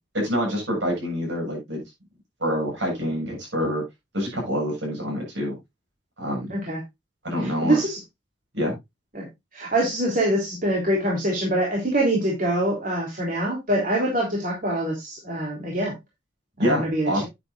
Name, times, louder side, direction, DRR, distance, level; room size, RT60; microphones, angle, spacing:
voice 1, 0.1-1.8 2.4-3.8 4.1-5.6 6.2-6.5 7.2-7.8 8.5-8.7 16.6-17.2, equal, 75° right, -1 dB, 7.1 m, -26 dB
voice 2, 7.4-8.0 9.1-9.3 9.5-15.9 16.6-17.2, right 1 dB, 45° right, -2 dB, 3.2 m, -24 dB
10.5 x 9.1 x 2.4 m, 0.20 s
head